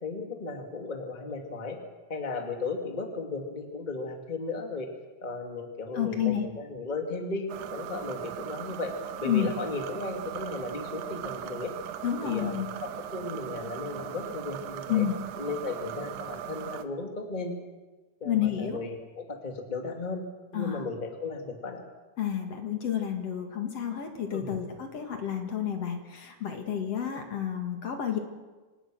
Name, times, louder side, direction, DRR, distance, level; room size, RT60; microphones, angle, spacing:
voice 1, 0.0-1.8 2.1-4.9 5.2-8.9 9.2-11.7 12.2-12.5 12.8-15.0 15.4-17.5 18.2-20.2 20.5-21.8 24.3-24.6, left 3 dB, 15° left, 4 dB, 1.8 m, -35 dB
voice 2, 5.9-6.4 9.2-9.5 12.0-12.7 14.9-15.2 18.2-18.8 20.5-20.8 22.2-28.2, left 9 dB, 55° left, 4 dB, 2.9 m, -30 dB
sound 1, 7.5-16.9, right 10 dB, 75° right, 2.4 m, -39 dB
26.0 x 19.0 x 6.3 m, 1.2 s
omnidirectional pair, 3.6 m